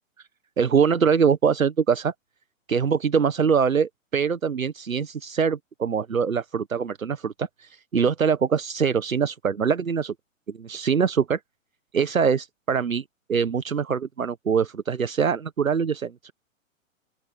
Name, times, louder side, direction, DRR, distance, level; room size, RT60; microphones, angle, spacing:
voice 1, 0.6-2.1 2.7-10.1 10.6-11.4 11.9-13.0 13.3-16.3, right 6 dB, 75° right, 1.4 m, -23 dB
open air
figure-of-eight pair, 115°, 41 cm